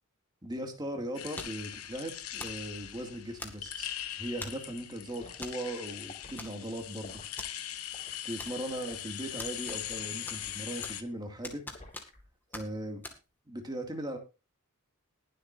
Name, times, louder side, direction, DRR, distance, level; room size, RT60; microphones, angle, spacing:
voice 1, 0.4-3.9 4.2-7.2 8.2-11.6 12.5-13.0 13.5-14.2, right 1 dB, 20° right, 3 dB, 2.4 m, -38 dB
sound 1, 1.1-11.0, left 11 dB, 85° left, 1.1 m, -41 dB
sound 2, 1.4-1.7 2.4-2.7 3.4-3.8 4.4-4.7 5.4-5.6 5.9-6.0 6.4-6.9 7.4-7.5 8.4-8.9 9.4-10.0 10.3-11.1 11.4-12.3 12.5-12.7 13.0-13.2, left 2 dB, 10° left, 2.1 m, -43 dB
Liquid, 5.2-5.4 6.0-6.4 7.0-7.3 7.9-8.2 8.8-9.1 9.9-10.1 10.8-11.1 11.7-12.2 12.5-12.8, left 2 dB, 30° left, 4.3 m, -51 dB
21.0 x 7.8 x 2.7 m, 0.30 s
head